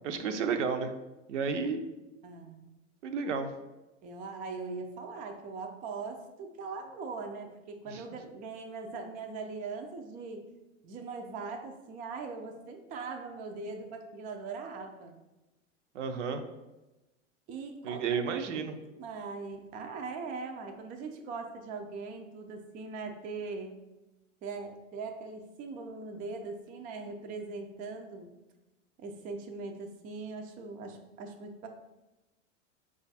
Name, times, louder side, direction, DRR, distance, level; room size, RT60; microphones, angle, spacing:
voice 1, 0.0-1.0 1.3-1.8 3.0-3.5 7.9-8.0 15.9-16.4 17.8-18.8, right 5 dB, 65° right, 8 dB, 0.6 m, -32 dB
voice 2, 2.2-2.7 4.0-10.4 10.8-15.2 17.5-18.0 18.5-23.8 24.4-28.3 29.0-31.7, right 4 dB, 20° right, 4 dB, 0.4 m, -41 dB
5.0 x 2.4 x 4.0 m, 1.0 s
figure-of-eight pair, 90°, 38 cm